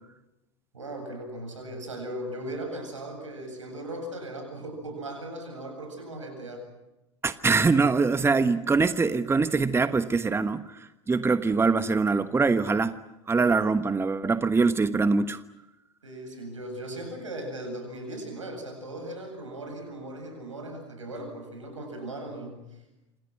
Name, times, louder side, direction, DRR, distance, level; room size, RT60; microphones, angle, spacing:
voice 1, 0.7-6.7 16.0-22.6, right 1 dB, 90° right, 5 dB, 8.0 m, -38 dB
voice 2, 7.2-10.6 11.1-12.9 13.3-15.4, right 4 dB, 15° right, 11 dB, 1.2 m, -23 dB
28.0 x 27.0 x 6.1 m, 0.94 s
hypercardioid pair, 80°, 16 cm